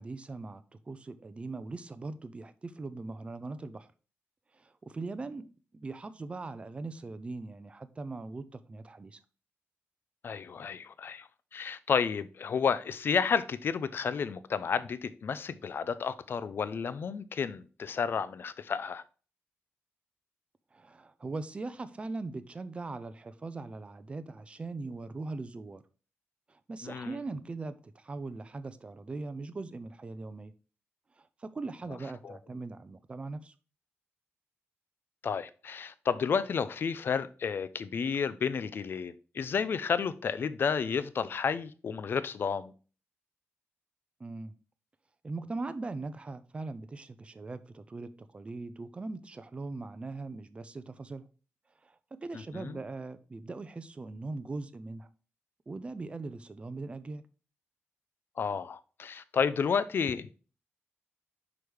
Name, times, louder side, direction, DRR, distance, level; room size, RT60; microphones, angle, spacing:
voice 1, 0.0-3.9 4.5-9.2 20.7-25.8 26.5-30.5 31.2-33.5 44.2-44.5 45.2-51.3 51.8-55.1 55.7-57.2, right 3 dB, 25° right, 0.5 m, -40 dB
voice 2, 10.2-19.0 26.8-27.2 32.2-32.4 35.2-42.7 52.3-52.8 58.4-60.4, left 6 dB, 50° left, 0.5 m, -31 dB
6.1 x 4.8 x 3.4 m
wide cardioid pair, 160°, 5 cm